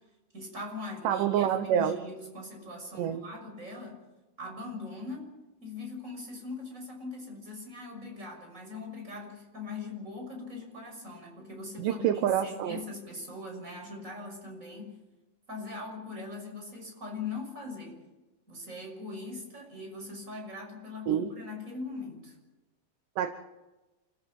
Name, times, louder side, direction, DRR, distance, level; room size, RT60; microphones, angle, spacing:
voice 1, 0.3-4.0 4.4-5.3 5.6-12.0 12.4-15.0 15.5-18.0 18.5-22.4, left 3 dB, 20° right, 1 dB, 6.5 m, -41 dB
voice 2, 1.0-2.0 3.0-3.2 11.8-12.8 21.1-21.3 23.2-23.3, right 10 dB, 70° right, 8 dB, 2.4 m, -27 dB
29.0 x 15.0 x 7.2 m, 1.1 s
omnidirectional pair, 4.5 m